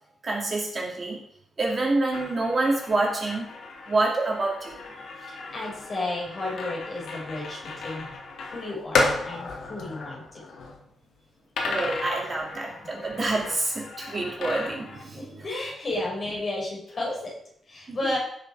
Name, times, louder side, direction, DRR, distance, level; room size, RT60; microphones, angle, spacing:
voice 1, 0.2-1.2 1.6-3.4 3.9-4.8 11.6-15.4 17.9-18.0, right 2 dB, 30° right, -2 dB, 2.5 m, -27 dB
sound 1, 2.1-10.8 11.6-15.0, left 3 dB, 70° left, 2.5 m, -33 dB
voice 2, 5.2-8.1 8.4-10.4 12.9-13.0 15.1-18.2, left 2 dB, 35° left, -4 dB, 5.7 m, -33 dB
16.5 x 6.8 x 4.7 m, 0.69 s
wide cardioid pair, 170°, 0 cm